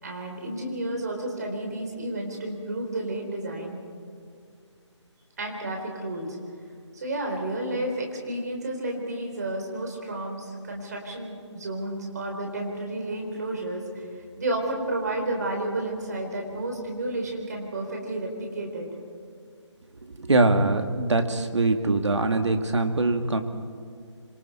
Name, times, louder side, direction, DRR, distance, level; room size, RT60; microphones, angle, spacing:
voice 1, 0.0-3.8 5.4-6.4 6.9-14.1 14.4-18.9, right 1 dB, 35° right, 1 dB, 4.0 m, -31 dB
voice 2, 20.2-23.4, right 2 dB, 70° right, 6 dB, 2.2 m, -23 dB
26.5 x 24.5 x 4.5 m, 2.3 s
figure-of-eight pair, 170°, 16 cm